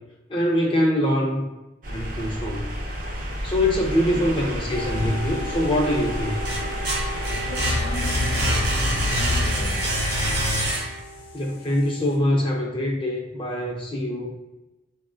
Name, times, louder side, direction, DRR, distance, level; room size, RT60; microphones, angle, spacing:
voice 1, 0.3-1.5 1.9-2.7 3.4-6.4 11.3-14.3, left 1 dB, 30° left, 0.4 m, -24 dB
sound 1, 1.8-10.7, equal, 45° right, 0.5 m, -31 dB
voice 2, 4.1-4.4 7.0-10.3, left 1 dB, 90° left, 0.5 m, -38 dB
sound 2, 4.7-12.2, equal, 50° left, 0.8 m, -38 dB
sound 3, 4.9-5.8 6.2-11.2, equal, 60° right, 0.9 m, -26 dB
3.5 x 2.1 x 2.5 m
head